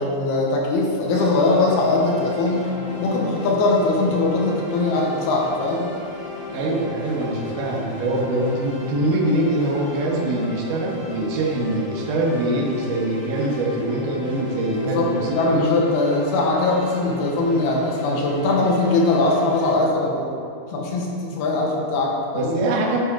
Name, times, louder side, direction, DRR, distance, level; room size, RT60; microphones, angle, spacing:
voice 1, 0.0-2.7 3.0-5.9 14.8-20.3 20.7-22.5, left 2 dB, 85° left, -2 dB, 3.3 m, -21 dB
sound 1, 1.1-19.7, left 2 dB, 45° left, 2.4 m, -35 dB
voice 2, 6.5-15.7 22.3-23.0, right 1 dB, 65° right, -3 dB, 2.6 m, -23 dB
9.8 x 6.6 x 4.9 m, 2.5 s
omnidirectional pair, 4.5 m